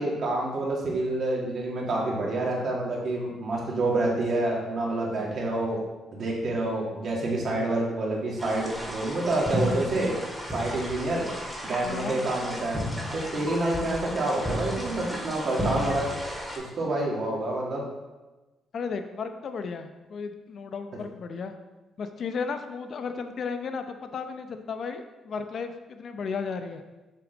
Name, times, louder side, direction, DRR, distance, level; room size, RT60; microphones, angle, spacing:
voice 1, 0.0-5.8 6.1-10.1 10.5-11.3 11.6-12.8 13.1-16.1 16.8-17.8, right 2 dB, 55° right, -3 dB, 2.3 m, -28 dB
sound 1, 8.4-16.6, equal, 5° right, 2.0 m, -33 dB
voice 2, 11.8-12.3 18.7-21.5 22.0-26.8, left 5 dB, 55° left, 8 dB, 0.7 m, -34 dB
6.9 x 6.1 x 4.0 m, 1.1 s
cardioid pair, 90°, 0 cm